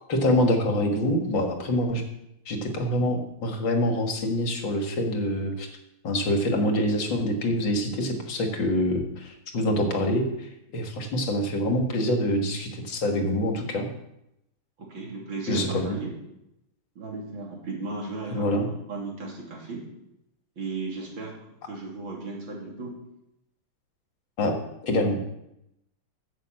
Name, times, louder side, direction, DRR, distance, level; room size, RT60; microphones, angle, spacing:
voice 1, 0.1-2.0 2.5-5.7 6.0-13.9 15.5-16.0 18.3-18.7 24.4-24.6 24.8-25.2, left 1 dB, 65° left, 3 dB, 2.4 m, -25 dB
voice 2, 14.8-16.1 17.0-19.8 20.6-22.9, right 3 dB, 65° right, -2 dB, 3.8 m, -36 dB
10.5 x 7.6 x 7.5 m, 0.84 s
omnidirectional pair, 2.3 m